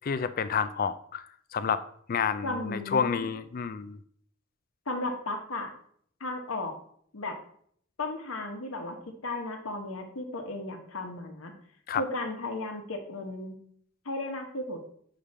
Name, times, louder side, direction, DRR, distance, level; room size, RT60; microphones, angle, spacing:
voice 1, 0.0-1.2 1.5-4.0 11.9-12.0, left 6 dB, 45° left, 12 dB, 0.4 m, -29 dB
voice 2, 2.4-3.3 4.9-5.7 6.2-6.8 7.1-7.4 8.0-9.0 9.2-11.5 12.0-13.6 14.0-14.8, left 2 dB, 90° left, 4 dB, 1.1 m, -35 dB
5.1 x 5.1 x 4.1 m, 0.63 s
head